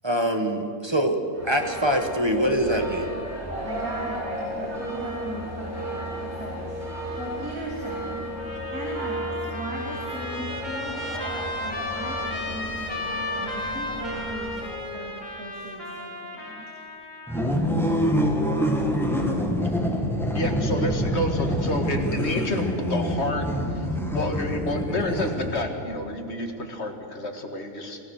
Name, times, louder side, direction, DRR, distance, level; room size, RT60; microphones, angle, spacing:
voice 1, 0.0-1.2 1.4-3.1, equal, 20° right, 4 dB, 1.5 m, -24 dB
sound 1, 1.3-14.6, equal, 50° right, 5.6 m, -34 dB
voice 2, 3.6-6.8 7.2-8.2 8.7-16.7, right 1 dB, 80° right, -4 dB, 3.5 m, -38 dB
Trumpet, 8.4-17.5, left 2 dB, 30° left, 2.4 m, -35 dB
sound 2, 17.3-25.8, equal, ahead, 1.9 m, -25 dB
voice 3, 20.3-28.0, left 1 dB, 50° left, 4 dB, 2.1 m, -29 dB
27.0 x 15.5 x 6.5 m, 2.8 s
omnidirectional pair, 1.5 m